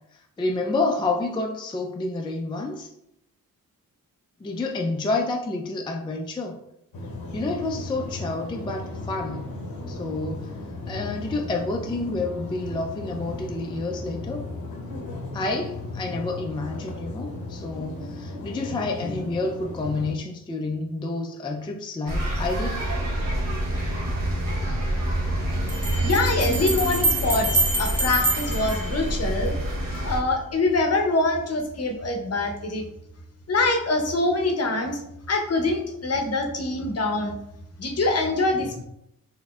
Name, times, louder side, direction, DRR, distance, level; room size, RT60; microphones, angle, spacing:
voice 1, 0.4-2.9 4.4-6.6 7.3-9.5 9.9-10.5 10.9-14.5 15.3-22.8, left 2 dB, 15° left, 2 dB, 0.3 m, -29 dB
sound 1, 6.9-20.1, left 2 dB, 85° left, 0.8 m, -36 dB
sound 2, 22.1-30.2, right 1 dB, 70° right, 0.9 m, -27 dB
Bell, 25.7-29.6, right 2 dB, 5° right, 0.9 m, -27 dB
voice 2, 26.0-29.6 30.0-32.9 33.5-35.0 35.3-37.4 37.8-38.8, left 2 dB, 45° left, 3 dB, 0.7 m, -24 dB
4.0 x 2.6 x 2.3 m, 0.79 s
cardioid pair, 80°, 34 cm